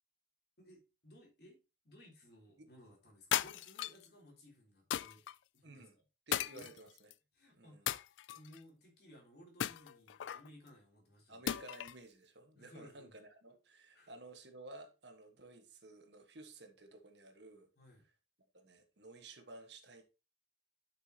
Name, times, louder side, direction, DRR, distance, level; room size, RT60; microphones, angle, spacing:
voice 1, 0.6-1.6 1.8-5.2 5.5-5.8 6.5-6.7 7.3-7.9 8.3-11.5 12.6-13.2 13.9-14.1 17.8-18.1, left 1 dB, 60° left, 3.7 m, -59 dB
sound 1, 3.3-4.1 4.9-5.3 6.3-7.1 7.9-8.6 9.6-10.5 11.5-12.0, left 11 dB, 85° left, 0.3 m, -37 dB
voice 2, 5.6-5.9 6.3-7.1 7.5-7.8 11.3-17.7 18.5-20.0, right 2 dB, 70° right, 1.6 m, -54 dB
11.5 x 6.0 x 3.0 m
head